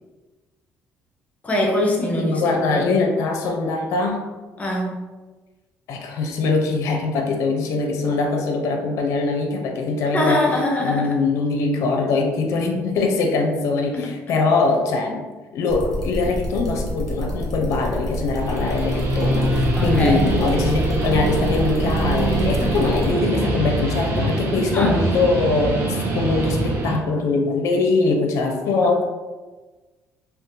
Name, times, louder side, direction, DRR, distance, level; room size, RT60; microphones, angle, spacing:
voice 1, 1.4-2.9 4.6-5.0 10.1-11.2 13.9-14.1 19.8-20.3 24.7-25.0, left 1 dB, 25° left, -1 dB, 0.7 m, -23 dB
voice 2, 2.2-4.2 5.9-10.4 10.8-15.2 15.5-25.8 26.1-29.0, left 3 dB, 70° left, 3 dB, 0.5 m, -22 dB
sound 1, 15.7-23.1, equal, 10° left, 1.1 m, -29 dB
Guitar, 18.3-27.0, right 2 dB, 55° right, 0.6 m, -24 dB
2.5 x 2.3 x 3.7 m, 1.2 s
cardioid pair, 110°, 5 cm